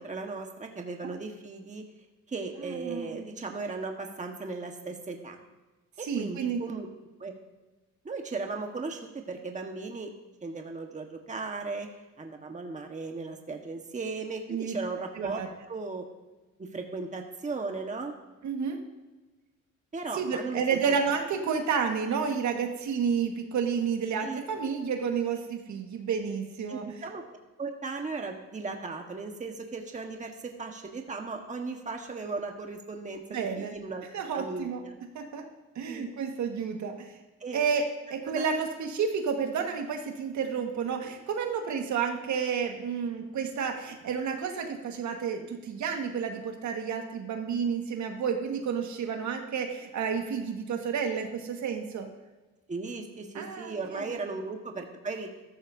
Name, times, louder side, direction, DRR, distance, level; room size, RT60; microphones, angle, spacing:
voice 1, 0.0-1.8 2.3-5.4 6.0-6.9 7.2-7.3 8.0-10.1 10.4-11.9 12.2-16.1 16.6-18.2 19.9-20.8 24.2-24.4 26.7-27.2 27.6-34.1 34.3-34.9 35.9-36.1 37.4-37.6 38.3-38.5 52.7-55.3, right 3 dB, 25° right, 3 dB, 1.4 m, -37 dB
voice 2, 2.6-3.3 6.0-6.6 14.5-14.8 15.1-15.5 18.4-18.8 20.1-26.8 33.3-33.7 34.1-34.8 35.1-35.4 35.7-37.2 37.5-52.1 53.3-54.2, right 6 dB, 70° right, 3 dB, 1.7 m, -31 dB
13.5 x 13.0 x 2.7 m, 1.2 s
cardioid pair, 90°, 30 cm